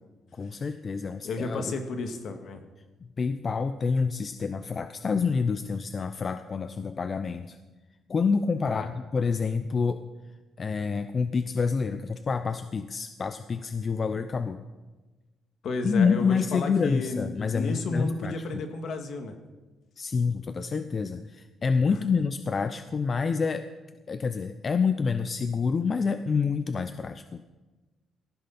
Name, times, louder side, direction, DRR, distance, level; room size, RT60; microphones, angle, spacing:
voice 1, 0.3-1.6 3.2-7.6 8.1-10.0 10.6-14.6 15.8-18.4 20.0-23.7 24.1-27.4, left 5 dB, 40° left, 10 dB, 0.6 m, -27 dB
voice 2, 1.2-2.6 8.6-8.9 15.6-19.4, left 3 dB, 65° left, 5 dB, 2.0 m, -32 dB
18.5 x 14.5 x 4.3 m, 1.2 s
cardioid pair, 90°, 0 cm